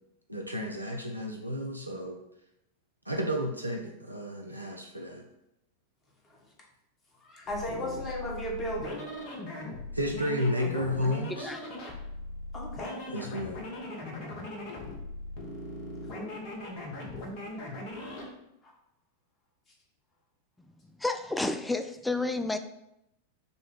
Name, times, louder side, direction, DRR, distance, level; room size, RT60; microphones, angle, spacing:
voice 1, 0.3-2.2 3.1-5.2 9.9-11.5 13.1-13.6, equal, 90° right, 0 dB, 0.5 m, -32 dB
voice 2, 7.1-9.0 12.5-13.0 16.1-16.4 18.6-18.7, equal, 25° left, -1 dB, 1.2 m, -36 dB
sound 1, 7.4-18.3, left 1 dB, 45° left, 1.0 m, -40 dB
voice 3, 21.0-22.6, left 2 dB, 5° left, 8 dB, 0.3 m, -30 dB
5.3 x 2.2 x 4.4 m, 0.82 s
figure-of-eight pair, 90°, 0 cm